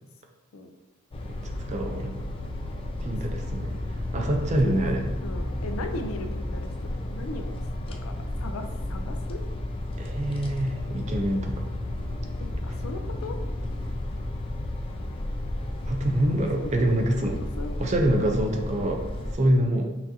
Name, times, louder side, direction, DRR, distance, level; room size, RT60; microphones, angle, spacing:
sound 1, 1.1-19.3, left 1 dB, 25° left, 0.3 m, -32 dB
voice 1, 1.3-2.2 3.0-3.7 4.1-5.0 10.0-11.6 15.9-17.4 17.8-19.0 19.3-19.9, right 1 dB, 35° right, 3 dB, 0.5 m, -25 dB
voice 2, 4.6-7.5 7.9-9.4 12.4-13.4 16.6-16.7 17.3-18.2 19.8-19.9, left 2 dB, 90° left, 6 dB, 0.5 m, -38 dB
5.7 x 2.6 x 2.7 m, 1.0 s
head